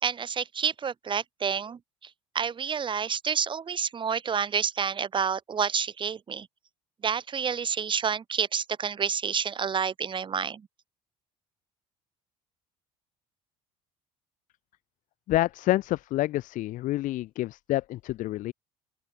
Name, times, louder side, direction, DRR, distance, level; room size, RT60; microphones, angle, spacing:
voice 1, 0.0-6.5 7.0-10.7, right 6 dB, 35° right, 4.1 m, -29 dB
voice 2, 15.3-18.5, left 16 dB, 65° left, 2.8 m, -28 dB
open air
supercardioid pair, 95°, 14 cm